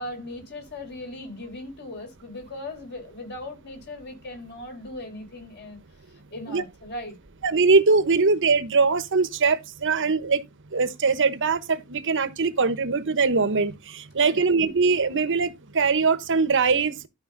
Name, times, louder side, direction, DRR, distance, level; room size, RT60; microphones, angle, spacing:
voice 1, 0.0-5.8 6.3-7.2 14.2-14.5, left 1 dB, 50° left, 4.3 m, -38 dB
voice 2, 7.4-10.4 10.7-17.1, right 4 dB, 60° right, 1.1 m, -22 dB
12.0 x 5.1 x 3.9 m
head